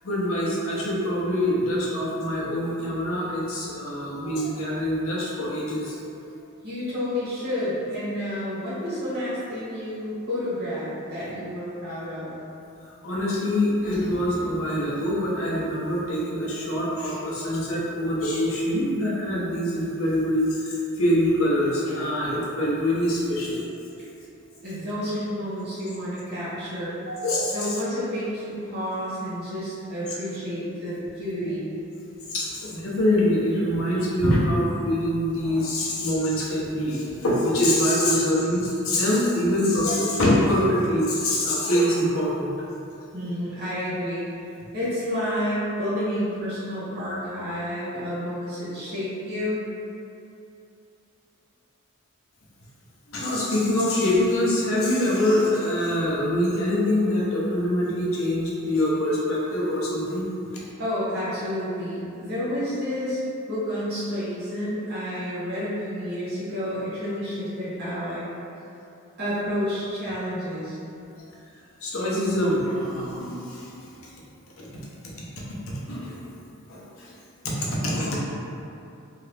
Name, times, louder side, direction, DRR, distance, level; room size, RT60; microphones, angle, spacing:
voice 1, 0.0-6.0 13.0-23.6 27.1-27.5 31.4-31.5 32.3-42.5 43.2-43.3 53.1-60.3 71.8-73.8 74.6-74.7 75.5-76.3 76.7-77.2 77.4-78.2, left 1 dB, 70° left, -5 dB, 0.6 m, -24 dB
voice 2, 6.6-12.3 24.6-27.0 27.5-31.7 43.1-44.2 44.7-49.7 60.8-63.2 63.5-68.3 69.2-70.8, equal, 50° right, -11 dB, 1.2 m, -30 dB
2.8 x 2.4 x 3.3 m, 2.7 s
head